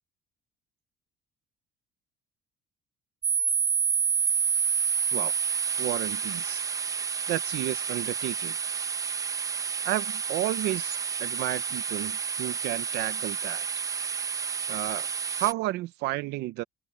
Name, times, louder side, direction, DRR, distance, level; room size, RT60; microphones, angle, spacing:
sound 1, 3.2-15.5, right 5 dB, 20° right, 1.0 m, -29 dB
voice 1, 5.8-6.6 7.3-8.6 9.8-13.6 14.7-16.6, right 17 dB, 85° right, 0.7 m, -32 dB
open air
cardioid pair, 110°, 17 cm